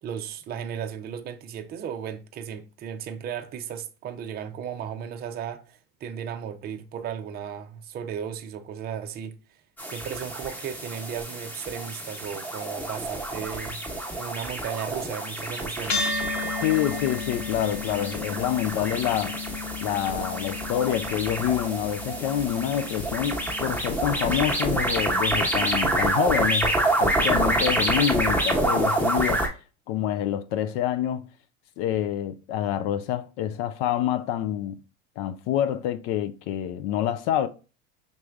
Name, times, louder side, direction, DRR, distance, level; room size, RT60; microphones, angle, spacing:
voice 1, 0.0-9.4 9.9-16.1, right 8 dB, 25° right, 0.5 m, -35 dB
sound 1, 9.8-29.5, right 1 dB, 5° left, 1.1 m, -28 dB
sound 2, 15.9-24.6, left 4 dB, 80° left, 2.0 m, -34 dB
voice 2, 16.6-19.3 19.8-29.6 29.9-31.3 31.8-34.8 35.2-37.5, left 11 dB, 55° left, 0.5 m, -27 dB
5.2 x 3.1 x 2.3 m
supercardioid pair, 115°, 37 cm